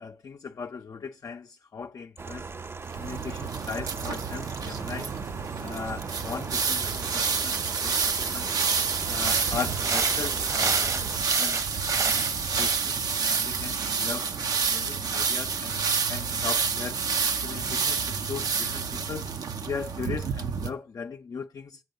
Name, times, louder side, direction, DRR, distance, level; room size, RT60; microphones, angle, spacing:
voice 1, 0.0-2.5 3.0-5.1 5.6-8.5 9.0-10.9 11.4-12.3 12.6-15.8 16.1-17.1 17.4-19.4 19.6-21.8, left 5 dB, 65° left, 0.4 m, -38 dB
sound 1, 2.2-11.2, right 4 dB, 40° right, 0.4 m, -39 dB
sound 2, 2.9-20.7, right 5 dB, 90° right, 0.6 m, -28 dB
sound 3, 9.0-13.1, right 3 dB, 60° right, 1.0 m, -33 dB
7.7 x 5.4 x 5.3 m
cardioid pair, 50°, 6 cm